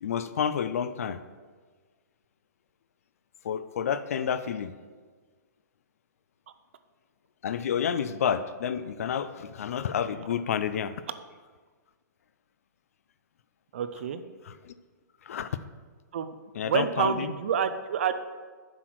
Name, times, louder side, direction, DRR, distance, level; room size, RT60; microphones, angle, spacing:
voice 1, 0.0-1.2 3.4-4.7 7.4-11.0 14.5-14.7 15.2-15.5 16.5-17.3, left 8 dB, 50° left, 13 dB, 0.4 m, -30 dB
voice 2, 13.7-14.2 16.1-16.3 16.6-18.1, right 7 dB, 40° right, 11 dB, 0.4 m, -28 dB
7.7 x 6.1 x 4.6 m, 1.5 s
hypercardioid pair, 175°, 10 cm